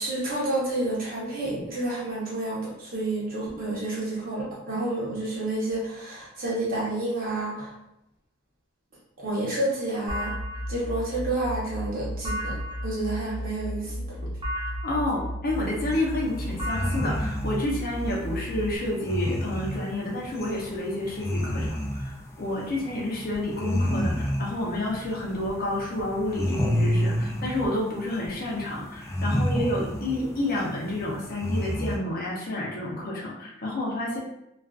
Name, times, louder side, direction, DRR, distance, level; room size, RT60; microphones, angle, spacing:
voice 1, 0.0-7.7 9.2-10.3 10.7-12.6 12.8-14.2, right 2 dB, 50° right, -6 dB, 0.9 m, -29 dB
sound 1, 10.1-18.8, equal, 25° right, 0.6 m, -33 dB
voice 2, 14.8-22.1 22.4-34.2, left 1 dB, 50° left, -3 dB, 0.7 m, -29 dB
sound 2, 15.5-32.0, equal, 15° left, 0.3 m, -30 dB
2.4 x 2.4 x 2.3 m, 0.83 s
head